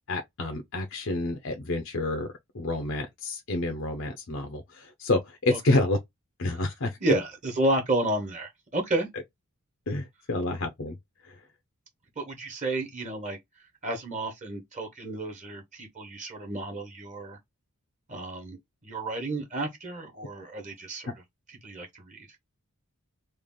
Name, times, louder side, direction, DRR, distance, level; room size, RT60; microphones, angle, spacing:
voice 1, 0.1-6.0 6.4-7.0 9.9-11.0 11.2-11.4, left 2 dB, 60° left, 0.7 m, -29 dB
voice 2, 7.0-9.1 12.2-13.4 13.8-17.4 18.1-21.1 21.6-22.3, right 1 dB, 35° right, 1.2 m, -31 dB
3.3 x 2.5 x 3.7 m
head